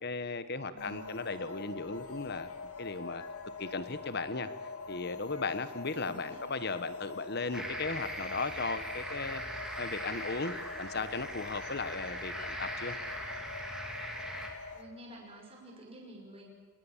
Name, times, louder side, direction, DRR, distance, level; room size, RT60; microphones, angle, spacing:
voice 1, 0.0-2.5 2.8-3.2 3.6-4.5 4.9-13.0, left 3 dB, 50° left, 12 dB, 1.3 m, -36 dB
voice 2, 0.7-1.3 6.0-6.4 14.7-16.5, right 1 dB, 25° right, 0 dB, 5.7 m, -50 dB
sound 1, 0.8-14.8, left 4 dB, 85° left, 2.0 m, -44 dB
sound 2, 7.5-14.5, equal, 5° right, 3.1 m, -40 dB
27.5 x 20.5 x 7.4 m, 1.5 s
head